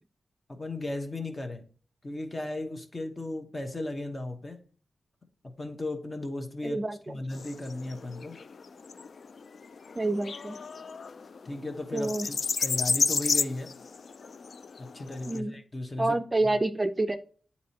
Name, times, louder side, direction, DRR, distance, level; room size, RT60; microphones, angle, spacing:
voice 1, 0.5-1.7 2.0-4.6 5.4-6.8 7.1-8.4 11.4-13.7 14.8-16.2 16.4-16.6, left 2 dB, 30° left, 1.2 m, -36 dB
voice 2, 6.6-7.2 10.0-10.6 11.9-12.3 15.3-15.5 16.0-17.2, right 2 dB, 25° right, 0.4 m, -28 dB
sound 1, 7.3-15.4, left 5 dB, 60° left, 0.3 m, -32 dB
8.2 x 4.2 x 2.9 m
cardioid pair, 65°, 0 cm